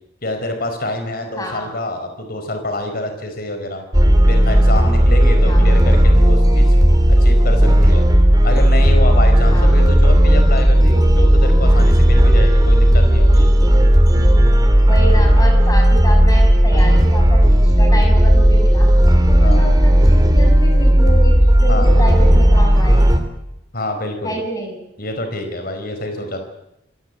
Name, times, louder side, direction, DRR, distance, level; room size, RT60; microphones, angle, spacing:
voice 1, 0.2-3.8 4.3-6.8 7.1-8.0 8.4-13.5 19.4-19.6 21.7-21.9 23.7-24.4 25.0-26.5, left 1 dB, 50° left, 6 dB, 4.7 m, -26 dB
voice 2, 1.4-1.7 5.5-5.7 9.5-9.8 14.9-18.9 19.3-23.1 24.2-24.8, equal, 20° left, 3 dB, 7.4 m, -27 dB
sound 1, 3.9-23.2, equal, 20° right, 2.8 m, -12 dB
27.0 x 18.0 x 8.5 m, 0.84 s
head